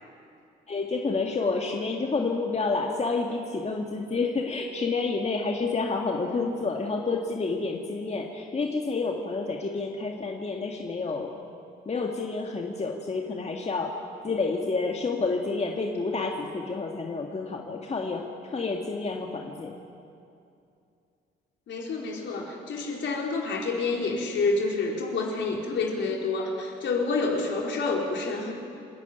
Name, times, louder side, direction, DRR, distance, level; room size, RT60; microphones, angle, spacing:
voice 1, 0.7-11.4 11.9-14.0 14.2-19.8, left 3 dB, 30° left, 1 dB, 2.1 m, -29 dB
voice 2, 21.7-28.5, left 3 dB, 60° left, 0 dB, 4.3 m, -28 dB
27.5 x 11.0 x 9.3 m, 2.6 s
supercardioid pair, 70°, 21 cm